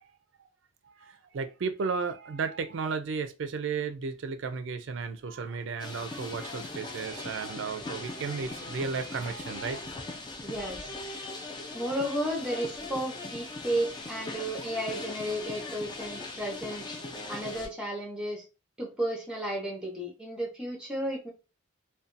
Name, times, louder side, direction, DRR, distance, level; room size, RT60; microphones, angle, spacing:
voice 1, 0.8-9.8, right 5 dB, 60° right, 0.4 m, -34 dB
sound 1, 5.8-17.7, left 2 dB, 20° left, 0.3 m, -40 dB
voice 2, 10.4-10.9 11.7-16.9 17.3-18.4 18.8-21.3, right 1 dB, 5° right, 0.8 m, -33 dB
2.6 x 2.2 x 2.5 m
head